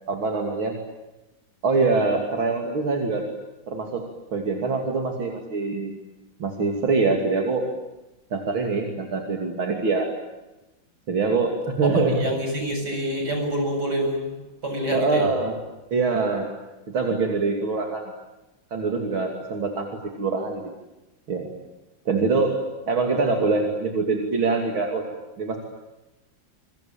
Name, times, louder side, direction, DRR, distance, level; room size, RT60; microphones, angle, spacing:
voice 1, 0.1-0.8 1.6-3.2 3.7-4.1 4.3-5.9 6.4-7.7 8.3-10.1 11.1-12.3 14.9-15.5 15.9-16.5 16.9-18.1 18.7-20.6 21.3-21.5 22.1-25.1 25.4-25.6, right 3 dB, 80° right, 2 dB, 3.6 m, -24 dB
voice 2, 11.8-14.3 14.6-15.3, right 1 dB, 55° right, 4 dB, 8.1 m, -26 dB
28.5 x 23.5 x 8.9 m, 1.0 s
omnidirectional pair, 2.2 m